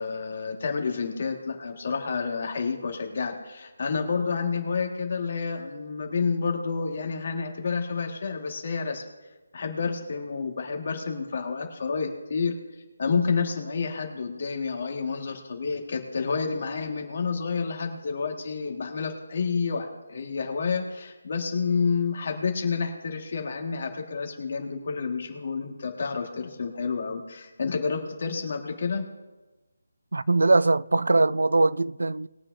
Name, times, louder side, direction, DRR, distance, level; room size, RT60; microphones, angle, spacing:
voice 1, 0.0-9.0 9.5-12.5 13.0-29.1, left 5 dB, 35° left, 1.8 m, -29 dB
voice 2, 30.1-32.3, right 3 dB, 85° right, 0.5 m, -21 dB
21.0 x 8.8 x 2.7 m
figure-of-eight pair, 180°, 0 cm